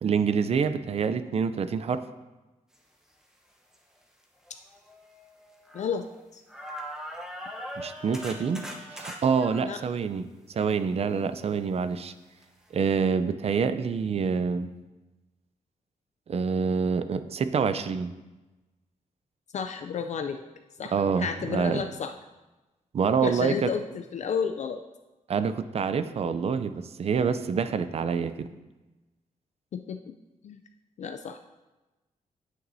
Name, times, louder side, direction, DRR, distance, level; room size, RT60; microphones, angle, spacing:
voice 1, 0.0-2.0 7.8-8.6 8.9-12.1 12.7-14.7 16.3-18.1 20.9-21.8 22.9-23.7 25.3-28.5, right 6 dB, 45° right, 11 dB, 0.5 m, -26 dB
sound 1, 3.7-3.8 4.5-6.2 6.5-9.6 12.4-12.5 12.9-13.0, equal, 5° right, 0.9 m, -41 dB
voice 2, 5.7-6.1 6.3-6.4 9.6-9.8 19.5-20.4 20.8-22.1 23.2-24.8 29.7-30.1 30.4-30.6 31.0-31.4, left 6 dB, 55° left, 7 dB, 0.4 m, -32 dB
9.4 x 8.7 x 2.7 m, 1.1 s
wide cardioid pair, 135°, 14 cm